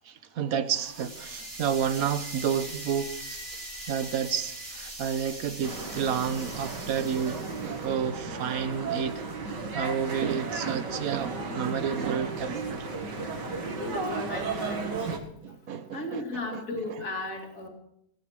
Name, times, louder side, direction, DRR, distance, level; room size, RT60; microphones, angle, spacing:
voice 1, 0.0-3.4 3.9-9.2 9.7-12.9 15.4-16.6, right 8 dB, 60° right, 1.3 m, -30 dB
sound 1, 0.7-7.9, right 1 dB, 35° right, 3.5 m, -41 dB
sound 2, 5.6-15.2, right 3 dB, 80° right, 2.5 m, -34 dB
voice 2, 13.9-15.1 15.9-17.7, left 2 dB, 50° left, 2.8 m, -36 dB
18.0 x 9.0 x 6.4 m
omnidirectional pair, 1.8 m